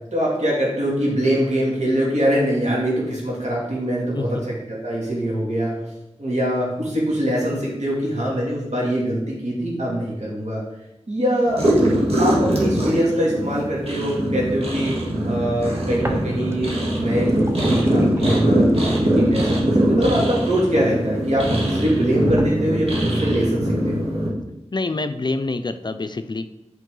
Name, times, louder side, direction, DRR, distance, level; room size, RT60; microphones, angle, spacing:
voice 1, 0.1-4.4 4.7-5.8 6.2-10.6 11.1-11.6 12.2-14.9 15.2-17.3 17.6-18.7 19.0-24.1, equal, 85° right, -5 dB, 2.6 m, -23 dB
sound 1, 11.5-24.3, right 1 dB, 65° right, 1.8 m, -21 dB
sound 2, 16.0-16.8 17.1-21.1 21.6-21.7 22.3-23.2, right 1 dB, 25° right, 0.8 m, -36 dB
voice 2, 24.7-26.5, left 3 dB, 40° left, 10 dB, 0.4 m, -26 dB
8.1 x 4.7 x 3.8 m, 0.90 s
wide cardioid pair, 55°, 11 cm